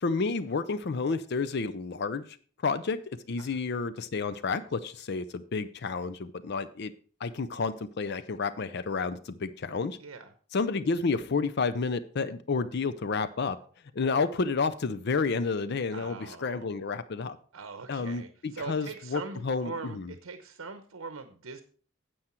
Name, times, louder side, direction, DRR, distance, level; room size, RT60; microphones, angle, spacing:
voice 1, 0.0-2.2 2.6-3.0 3.3-6.9 7.2-10.0 10.5-13.6 13.9-17.4 17.9-20.0, left 4 dB, 55° left, 14 dB, 0.5 m, -30 dB
voice 2, 10.0-10.3 15.9-16.7 17.5-21.6, right 4 dB, 85° right, 9 dB, 0.8 m, -42 dB
9.7 x 7.9 x 4.4 m, 0.43 s
head